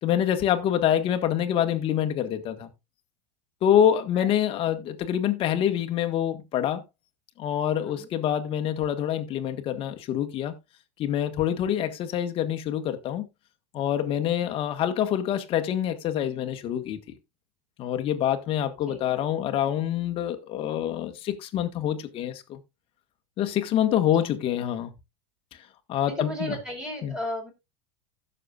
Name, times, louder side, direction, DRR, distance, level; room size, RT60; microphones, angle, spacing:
voice 1, 0.0-2.7 3.6-6.8 7.4-10.5 11.0-13.2 13.7-17.0 17.8-22.6 23.4-24.9 25.9-26.6 27.0-27.1, left 10 dB, 40° left, 1.7 m, -26 dB
voice 2, 26.2-27.5, equal, 5° right, 4.8 m, -35 dB
16.0 x 6.8 x 2.5 m
supercardioid pair, 135°, 15 cm